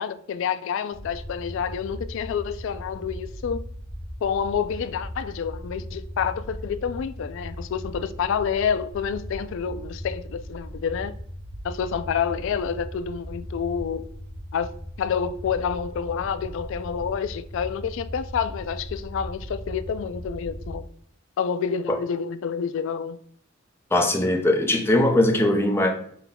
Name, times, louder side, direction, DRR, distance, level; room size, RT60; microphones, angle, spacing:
voice 1, 0.0-3.6 4.2-11.1 11.6-14.0 14.5-14.7 15.0-20.9 21.4-23.2, left 7 dB, 65° left, 0.3 m, -28 dB
sound 1, 0.9-20.8, equal, 65° right, 1.2 m, -38 dB
voice 2, 23.9-25.9, left 1 dB, 10° left, 0.7 m, -20 dB
5.9 x 2.2 x 3.6 m
head